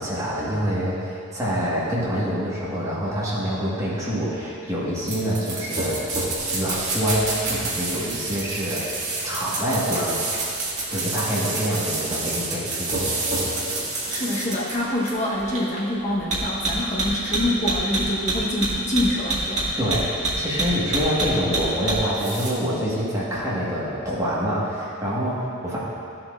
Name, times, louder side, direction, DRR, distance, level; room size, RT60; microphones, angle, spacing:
voice 1, 0.0-6.0 6.5-8.9 9.2-10.2 10.9-13.0 19.8-25.8, equal, 15° right, -8 dB, 1.7 m, -26 dB
sound 1, 5.1-22.5, right 2 dB, 35° right, 1.9 m, -27 dB
voice 2, 14.1-19.7, left 1 dB, 35° left, -5 dB, 1.2 m, -26 dB
14.0 x 7.4 x 2.6 m, 2.5 s
head